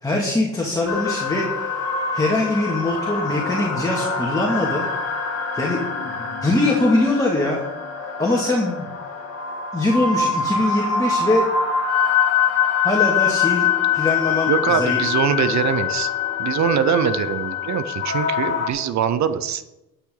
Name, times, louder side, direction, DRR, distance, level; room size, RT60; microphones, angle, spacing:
voice 1, 0.0-1.9 2.1-4.9 5.5-7.6 8.2-8.9 9.7-11.4 12.8-13.7 13.9-15.0, left 2 dB, 10° left, -3 dB, 2.4 m, -22 dB
sound 1, 0.9-18.7, left 6 dB, 55° left, 2.0 m, -24 dB
voice 2, 14.5-16.1 16.4-19.6, right 8 dB, 65° right, 12 dB, 0.8 m, -22 dB
12.0 x 9.2 x 4.0 m, 0.97 s
cardioid pair, 90°, 30 cm